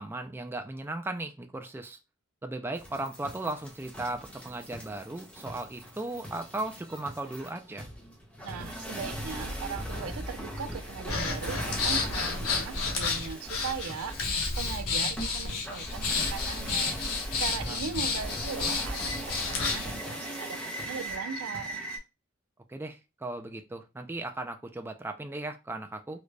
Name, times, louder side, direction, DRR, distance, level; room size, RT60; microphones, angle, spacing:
voice 1, 0.0-2.0 2.4-7.9 17.6-17.9 22.7-26.2, right 2 dB, 10° right, 0.3 m, -37 dB
sound 1, 2.8-22.0, right 1 dB, 5° left, 0.9 m, -40 dB
voice 2, 8.4-21.8, right 6 dB, 70° right, 0.5 m, -39 dB
Breathing, 11.1-19.9, left 4 dB, 80° left, 1.1 m, -31 dB
3.8 x 2.1 x 3.2 m
head